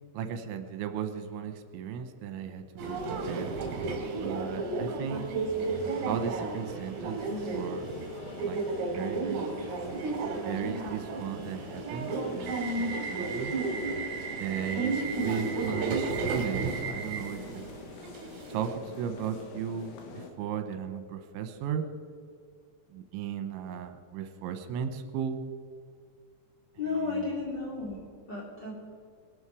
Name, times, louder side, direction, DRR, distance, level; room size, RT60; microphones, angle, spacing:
voice 1, 0.1-3.5 4.2-5.2 6.1-7.9 8.4-8.6 8.9-9.7 10.4-13.5 14.4-17.7 18.5-18.7 19.0-21.9 22.9-25.4 27.1-27.2, right 8 dB, 80° right, 8 dB, 3.2 m, -36 dB
Subway metro underground, 2.8-18.7, right 3 dB, 60° right, 3.7 m, -33 dB
sound 1, 5.5-20.3, left 4 dB, 70° left, 3.3 m, -45 dB
voice 2, 26.8-28.0 28.3-28.7, left 4 dB, 25° left, -4 dB, 3.0 m, -33 dB
20.5 x 12.5 x 4.9 m, 2.2 s
omnidirectional pair, 5.4 m